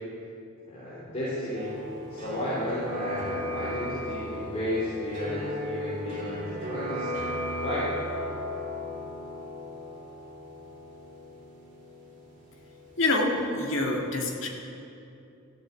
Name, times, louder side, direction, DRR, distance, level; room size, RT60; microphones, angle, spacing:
voice 1, 0.7-1.8 2.1-7.3 7.6-7.9, left 1 dB, 30° left, -10 dB, 3.3 m, -33 dB
sound 1, 1.5-13.3 13.5-13.6, left 1 dB, 35° right, 2.5 m, -36 dB
voice 2, 13.0-14.5, left 2 dB, 60° left, -1 dB, 1.9 m, -26 dB
14.5 x 8.3 x 8.3 m, 2.7 s
head